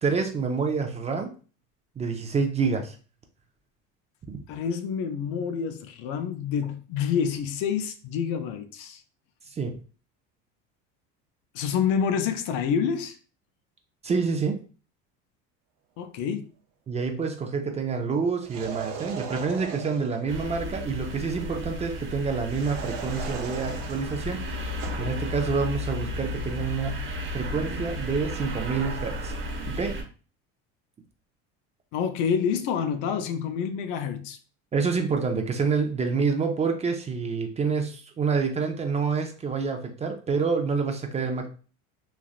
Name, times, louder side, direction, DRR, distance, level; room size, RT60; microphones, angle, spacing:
voice 1, 0.0-1.3 2.0-3.0 4.3-4.4 9.6-9.8 14.0-14.6 16.9-27.1 27.3-29.3 29.7-30.0 34.7-41.5, right 5 dB, 20° right, 0.4 m, -27 dB
voice 2, 4.5-9.0 11.5-13.2 16.0-16.5 31.9-34.4, left 7 dB, 65° left, 0.6 m, -28 dB
sound 1, 18.4-20.2 22.4-25.1, right 6 dB, 75° right, 0.8 m, -38 dB
sound 2, 20.3-30.0, left 1 dB, 40° right, 0.8 m, -33 dB
3.2 x 2.4 x 2.4 m
supercardioid pair, 115°, 33 cm